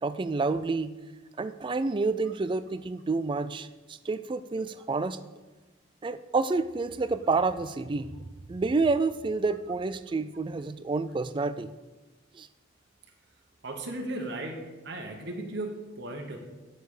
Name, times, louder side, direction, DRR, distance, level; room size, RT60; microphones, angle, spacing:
voice 1, 0.0-1.0 1.4-5.2 6.0-11.7 12.3-12.5, right 3 dB, 25° right, 13 dB, 0.3 m, -29 dB
voice 2, 13.6-16.4, right 1 dB, 60° right, 2 dB, 1.2 m, -36 dB
9.2 x 6.4 x 4.9 m, 1.2 s
head